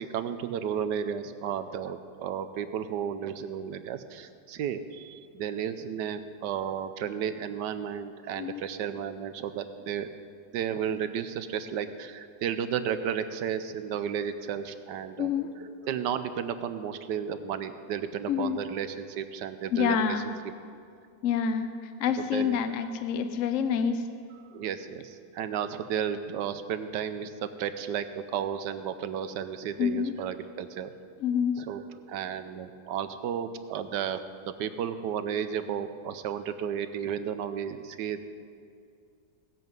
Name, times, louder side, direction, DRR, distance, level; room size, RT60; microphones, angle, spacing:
voice 1, 0.0-10.1 10.5-15.3 15.9-20.5 22.2-22.6 24.4-30.9 31.6-38.2, right 8 dB, 85° right, 11 dB, 1.3 m, -33 dB
voice 2, 15.2-15.5 18.3-18.6 19.7-20.3 21.2-21.7 22.0-24.1 29.8-30.1 31.2-31.6, left 7 dB, 65° left, 9 dB, 0.9 m, -27 dB
19.0 x 7.7 x 5.3 m, 2.4 s
omnidirectional pair, 1.8 m